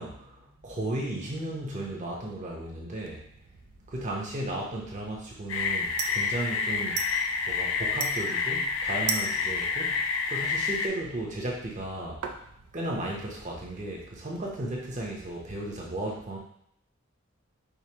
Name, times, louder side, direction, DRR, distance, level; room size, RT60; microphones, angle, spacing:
voice 1, 0.0-3.2 3.9-7.0 7.5-9.9 10.3-12.2 12.7-16.4, right 1 dB, 35° right, -2 dB, 0.8 m, -35 dB
sound 1, 3.0-15.8, right 6 dB, 90° right, 0.4 m, -42 dB
sound 2, 5.5-10.9, left 5 dB, 70° left, 0.4 m, -29 dB
4.9 x 2.0 x 2.9 m, 0.71 s
head